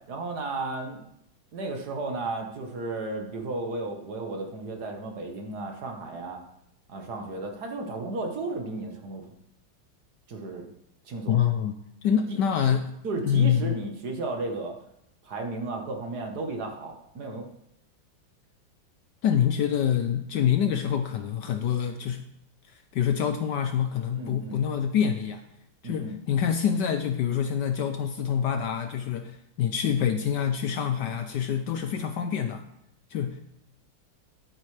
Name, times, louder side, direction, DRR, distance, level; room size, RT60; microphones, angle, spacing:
voice 1, 0.1-1.1 1.5-6.4 6.9-9.2 10.3-10.7 11.0-11.4 12.3-12.4 13.0-14.8 15.2-17.5 24.1-24.5 25.8-26.2 31.0-31.1, right 2 dB, 55° right, 3 dB, 1.7 m, -34 dB
voice 2, 11.3-11.7 12.0-12.9 13.2-13.8 19.2-22.3 22.7-25.4 25.8-32.6 33.1-33.4, left 8 dB, 70° left, 7 dB, 1.1 m, -26 dB
12.0 x 8.7 x 3.3 m, 0.80 s
omnidirectional pair, 2.3 m